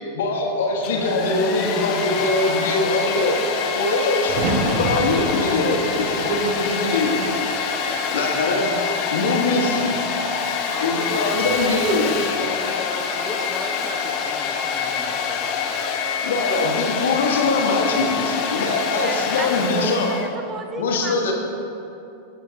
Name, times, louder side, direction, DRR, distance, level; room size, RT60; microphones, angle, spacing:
voice 1, 0.1-4.3 4.8-7.2 7.5-8.7 9.1-9.9 10.8-12.1 16.2-20.1 20.8-21.3, left 2 dB, 60° left, 0 dB, 1.3 m, -22 dB
Domestic sounds home sounds, 0.7-20.3, left 6 dB, 40° left, 1.0 m, -26 dB
sound 1, 4.3-8.3 8.7-9.4 11.3-11.8, right 2 dB, 45° right, 1.2 m, -29 dB
voice 2, 10.5-16.0 19.2-20.0, left 3 dB, 15° left, 3 dB, 0.9 m, -36 dB
voice 3, 18.9-21.3, right 4 dB, 20° right, 7 dB, 0.7 m, -33 dB
18.5 x 6.7 x 2.7 m, 2.7 s
figure-of-eight pair, 90°, 0 cm